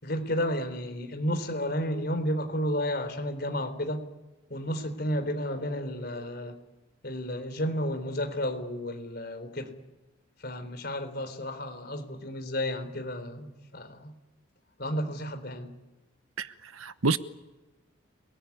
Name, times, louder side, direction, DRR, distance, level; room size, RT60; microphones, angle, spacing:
voice 1, 0.0-4.0 4.5-6.6 7.0-9.7 10.4-14.1 14.8-15.7, equal, 50° left, 3.8 m, -32 dB
voice 2, 16.4-17.2, right 4 dB, 80° right, 1.1 m, -29 dB
28.5 x 19.5 x 9.5 m
head